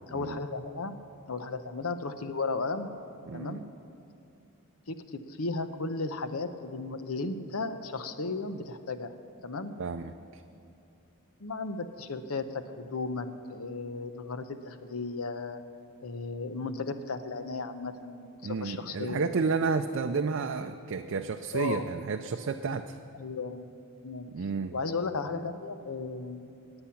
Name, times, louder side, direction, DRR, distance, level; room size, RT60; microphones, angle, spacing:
voice 1, 0.1-1.0 1.3-2.9 3.3-3.6 4.9-9.1 9.4-9.7 11.4-15.6 16.0-19.3 21.5-21.8 23.1-23.7 24.0-24.3 24.7-26.5, left 3 dB, 80° left, 10 dB, 0.8 m, -35 dB
voice 2, 3.3-3.6 9.8-10.4 18.4-23.0 24.3-24.7, right 4 dB, 60° right, 6 dB, 0.4 m, -31 dB
18.5 x 8.9 x 5.8 m, 2.7 s
head